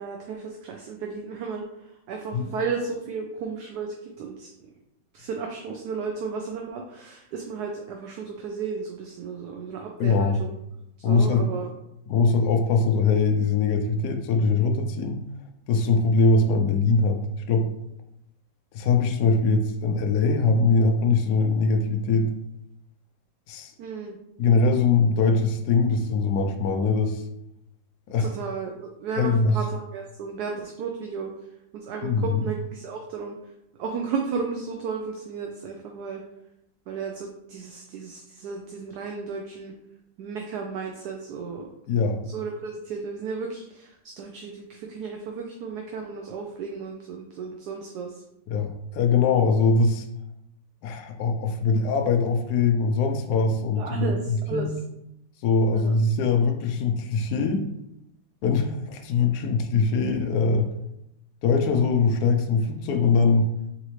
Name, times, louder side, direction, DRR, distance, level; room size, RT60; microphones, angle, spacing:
voice 1, 0.0-4.7 5.1-10.6 11.0-11.7 23.8-24.2 28.2-31.3 31.7-33.3 33.8-36.2 36.9-39.7 40.2-41.7 42.2-48.2 53.8-54.7 55.7-55.9, right 5 dB, 70° right, 2 dB, 1.0 m, -34 dB
voice 2, 10.0-10.4 11.0-11.5 12.1-15.2 15.7-17.2 17.5-17.7 18.7-22.3 23.5-23.7 24.4-27.2 28.1-28.3 29.2-29.6 32.0-32.4 41.9-42.2 48.5-50.1 50.8-54.7 55.4-57.7 58.4-60.7 61.4-63.5, left 4 dB, 70° left, 4 dB, 0.9 m, -22 dB
4.0 x 3.9 x 3.1 m, 0.83 s
omnidirectional pair, 2.1 m